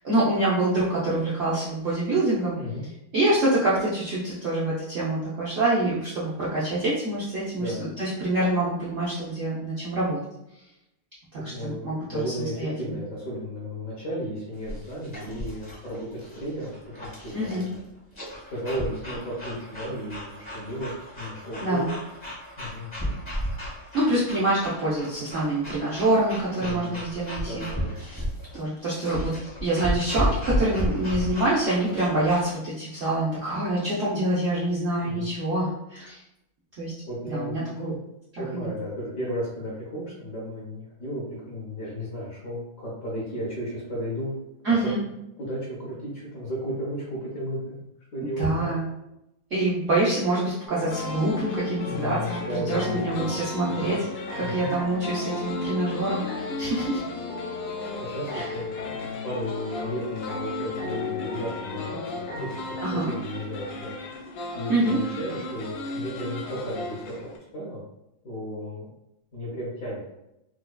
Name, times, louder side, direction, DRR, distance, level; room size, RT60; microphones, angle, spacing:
voice 1, 0.0-2.6 3.1-10.2 11.3-13.0 17.3-17.7 21.6-21.9 23.9-27.7 28.5-29.3 29.6-36.2 36.8-36.9 37.3-37.9 38.5-38.7 44.6-45.0 48.2-48.8 49.5-57.0 58.3-58.5 62.8-63.1 64.7-65.0, right 1 dB, 80° right, -8 dB, 0.6 m, -26 dB
voice 2, 11.4-16.7 17.0-17.6 18.5-20.9 21.2-21.8 22.6-22.9 26.6-27.0 27.4-27.9 35.0-35.2 37.1-37.9 38.4-44.3 44.7-44.9 45.4-47.8 48.1-48.7 51.8-53.3 53.6-54.0 54.4-54.7 58.0-62.5 62.8-63.9 64.5-67.3 67.5-67.8 68.2-68.9 69.3-70.0, equal, 55° left, -6 dB, 1.0 m, -34 dB
sound 1, 14.6-32.5, equal, 25° left, 0.6 m, -34 dB
sound 2, 50.7-62.8, left 5 dB, 90° left, 2.0 m, -35 dB
sound 3, 50.9-67.4, left 1 dB, 70° left, 1.3 m, -37 dB
4.6 x 2.2 x 2.2 m, 0.86 s
omnidirectional pair, 2.3 m